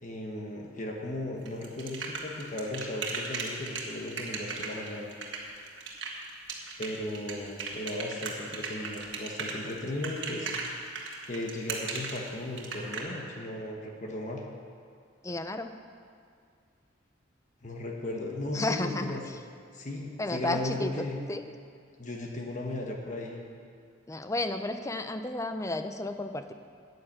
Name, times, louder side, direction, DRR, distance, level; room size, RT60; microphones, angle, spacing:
voice 1, 0.0-5.1 6.8-10.6 11.3-14.4 17.6-19.2 19.7-21.2 22.0-23.4, left 1 dB, 40° left, 0 dB, 1.3 m, -36 dB
sound 1, 1.5-13.0, right 5 dB, 60° right, 1.7 m, -36 dB
voice 2, 15.2-15.8 18.5-19.2 20.2-20.9 21.3-21.5 24.1-26.5, left 2 dB, 15° left, 8 dB, 0.5 m, -32 dB
10.0 x 9.7 x 7.4 m, 2.2 s
head